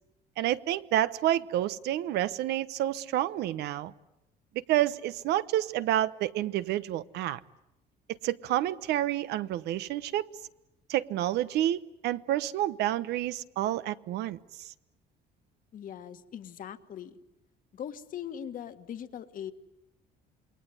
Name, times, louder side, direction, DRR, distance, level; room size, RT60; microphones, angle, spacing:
voice 1, 0.4-3.9 4.5-7.4 8.1-10.3 10.9-14.7, right 13 dB, 80° right, 15 dB, 1.0 m, -29 dB
voice 2, 15.7-17.2 17.7-19.5, left 9 dB, 55° left, 9 dB, 1.7 m, -40 dB
27.5 x 21.5 x 9.9 m, 0.90 s
cardioid pair, 110°, 17 cm